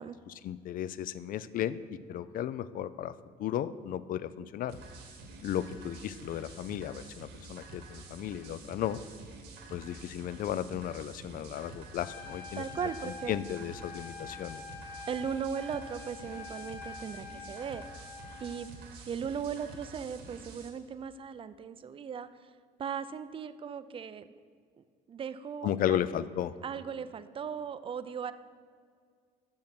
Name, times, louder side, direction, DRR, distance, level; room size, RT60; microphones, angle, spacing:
voice 1, 0.3-3.1 3.4-4.8 5.4-9.0 9.7-12.6 13.0-14.6 25.6-26.5, left 11 dB, 55° left, 16 dB, 0.4 m, -34 dB
sound 1, 4.7-20.7, right 3 dB, 85° right, 1.5 m, -49 dB
Trumpet, 12.0-18.7, left 5 dB, 75° left, 1.3 m, -46 dB
voice 2, 12.5-13.4 15.1-17.8 18.4-18.7 19.0-22.5 22.8-24.3 25.1-26.0 26.6-28.3, right 7 dB, 30° right, 13 dB, 0.4 m, -37 dB
7.0 x 6.6 x 6.0 m, 2.1 s
cardioid pair, 110°, 17 cm